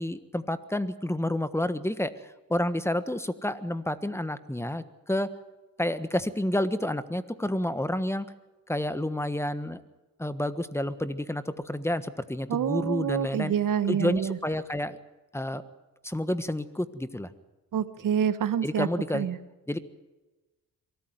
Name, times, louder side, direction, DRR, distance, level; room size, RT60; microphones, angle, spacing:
voice 1, 0.0-2.1 2.5-5.3 5.8-8.3 8.7-9.8 10.2-13.5 13.9-15.0 15.3-15.6 16.0-17.3 18.6-19.3 19.7-19.8, left 1 dB, 10° left, 13 dB, 1.4 m, -29 dB
voice 2, 12.5-14.4 17.7-18.9 19.1-19.4, right 9 dB, 70° right, 13 dB, 1.3 m, -27 dB
23.0 x 13.5 x 9.4 m, 1.1 s
cardioid pair, 65°, 34 cm